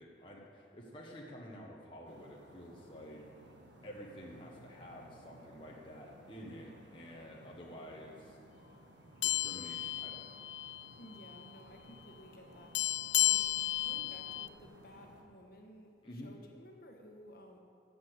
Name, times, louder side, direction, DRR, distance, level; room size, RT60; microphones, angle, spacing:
voice 1, 0.0-3.2 3.8-8.4 9.2-10.4 16.0-16.3, equal, 30° left, -3 dB, 1.2 m, -50 dB
sound 1, 2.0-15.2, equal, 80° right, 1.7 m, -58 dB
sound 2, 9.2-10.9 11.2-11.4 12.7-14.5, left 15 dB, 75° left, 0.3 m, -33 dB
voice 2, 11.0-17.6, equal, 50° left, 2 dB, 1.4 m, -55 dB
14.0 x 6.9 x 8.0 m, 2.5 s
head